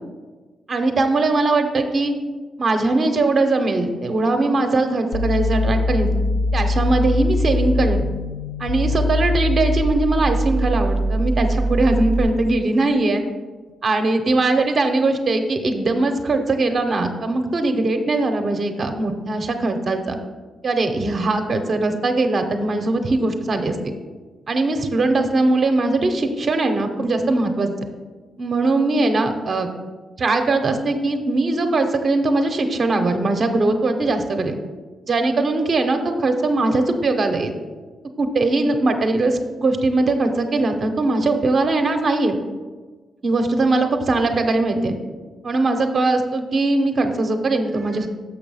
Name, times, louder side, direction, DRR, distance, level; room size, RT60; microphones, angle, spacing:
voice 1, 0.7-2.1 2.6-6.2 6.5-8.0 8.6-13.2 13.8-20.2 20.6-23.8 24.5-27.7 28.4-29.7 30.2-34.6 35.1-37.5 38.2-42.4 43.2-45.0 45.4-48.1, right 2 dB, 35° right, 5 dB, 0.6 m, -20 dB
sound 1, 5.1-12.2, left 1 dB, 65° left, 0.6 m, -22 dB
6.8 x 5.4 x 5.5 m, 1.4 s
wide cardioid pair, 165°, 0 cm